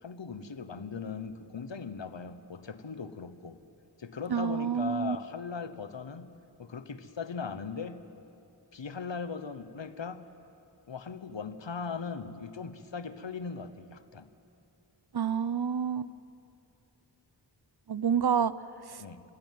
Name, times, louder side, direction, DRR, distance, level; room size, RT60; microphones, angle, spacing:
voice 1, 0.0-3.6 4.0-6.3 6.6-8.0 8.7-10.2 10.9-14.3 19.0-19.2, left 5 dB, 85° left, 12 dB, 1.1 m, -39 dB
voice 2, 4.3-5.2 15.1-16.1 17.9-18.5 18.9-19.0, right 7 dB, 60° right, 17 dB, 0.7 m, -28 dB
29.5 x 15.0 x 9.3 m, 2.7 s
wide cardioid pair, 60°, 43 cm